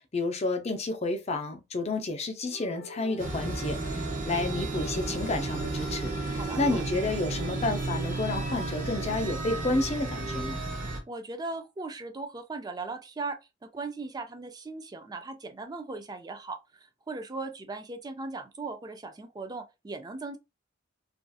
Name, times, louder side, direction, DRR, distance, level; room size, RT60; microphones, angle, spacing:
voice 1, 0.1-10.6, left 2 dB, 35° left, 0.5 m, -30 dB
sound 1, 2.4-10.5, equal, 85° left, 0.8 m, -46 dB
sound 2, 3.2-11.0, right 2 dB, 40° right, 0.8 m, -33 dB
voice 2, 6.2-6.8 10.6-20.4, right 3 dB, 20° right, 0.3 m, -38 dB
2.6 x 2.4 x 2.3 m
head